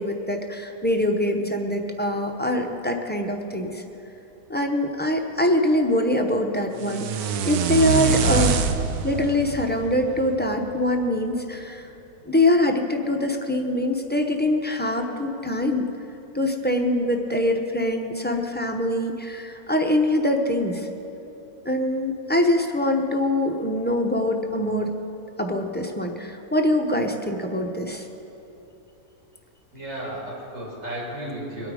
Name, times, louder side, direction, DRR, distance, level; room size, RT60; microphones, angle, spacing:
voice 1, 0.0-3.8 4.5-8.7 9.0-11.9 12.3-15.9 16.3-20.9 21.6-24.9 25.4-28.1, left 1 dB, 10° left, 2 dB, 0.5 m, -24 dB
sound 1, 6.8-10.9, right 6 dB, 75° right, 1.2 m, -25 dB
voice 2, 29.7-31.7, right 1 dB, 55° right, -5 dB, 4.6 m, -34 dB
22.0 x 8.9 x 4.9 m, 2.9 s
omnidirectional pair, 1.6 m